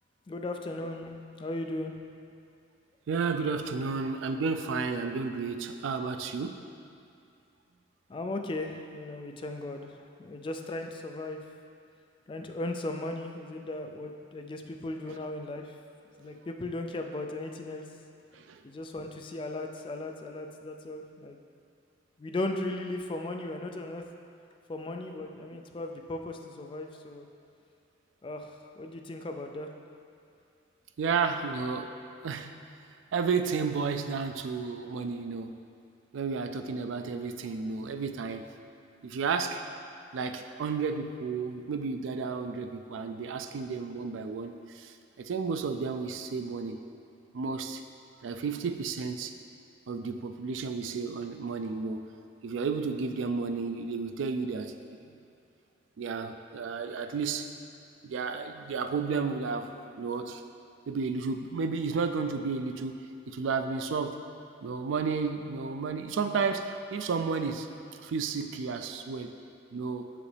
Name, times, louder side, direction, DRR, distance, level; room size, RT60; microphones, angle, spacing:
voice 1, 0.3-1.9 8.1-11.4 12.3-15.7 16.2-17.9 18.6-21.4 22.2-24.0 24.7-27.3 28.2-29.7, left 2 dB, 25° left, 4 dB, 0.3 m, -37 dB
voice 2, 3.1-6.6 18.3-18.6 31.0-31.9 32.2-32.5 33.1-35.6 36.1-38.5 39.0-39.6 40.1-46.8 47.3-47.8 48.2-49.3 49.9-52.1 52.4-55.2 56.0-57.5 58.0-60.4 60.9-63.0 63.3-64.2 64.6-67.7 67.9-69.3 69.7-70.1, right 5 dB, 85° right, 7 dB, 0.4 m, -32 dB
6.8 x 5.0 x 3.3 m, 2.5 s
head